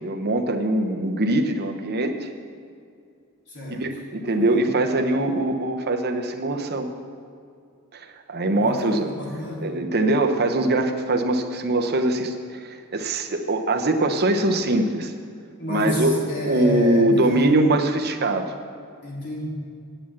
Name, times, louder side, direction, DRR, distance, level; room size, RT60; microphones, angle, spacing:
voice 1, 0.0-2.3 3.7-6.9 7.9-9.1 9.6-15.1 15.7-18.5, right 2 dB, 45° right, 6 dB, 0.9 m, -22 dB
voice 2, 3.5-3.8 4.3-4.6 8.6-9.7 15.6-17.5 19.0-19.5, left 1 dB, 55° left, -5 dB, 3.5 m, -29 dB
9.0 x 8.8 x 7.4 m, 2.3 s
head